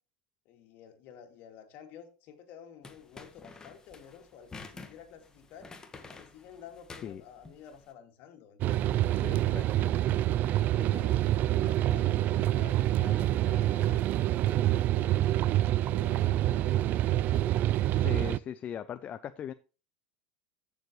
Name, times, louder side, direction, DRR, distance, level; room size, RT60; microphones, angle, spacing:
voice 1, 0.4-5.7 6.0-8.9 9.5-11.3 11.6-15.0 15.7-17.5, left 8 dB, 55° left, 2.7 m, -51 dB
sound 1, 2.8-7.9, left 4 dB, 15° left, 1.6 m, -49 dB
sound 2, 8.6-18.4, right 14 dB, 45° right, 0.4 m, -26 dB
voice 2, 9.1-9.6 18.0-19.5, left 9 dB, 35° left, 0.6 m, -39 dB
14.5 x 7.0 x 3.2 m
supercardioid pair, 120°, 4 cm